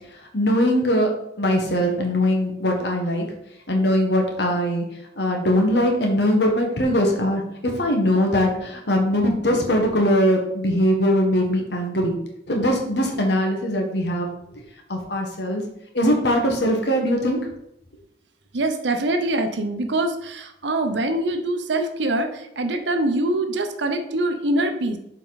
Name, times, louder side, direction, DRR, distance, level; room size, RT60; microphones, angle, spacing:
voice 1, 0.3-1.1 1.4-3.2 3.7-4.8 5.2-12.2 12.5-14.3 14.9-15.6 15.9-17.4, equal, 65° left, 1 dB, 1.5 m, -21 dB
voice 2, 18.5-25.0, right 2 dB, 75° right, 6 dB, 0.8 m, -24 dB
7.0 x 4.5 x 4.1 m, 0.79 s
head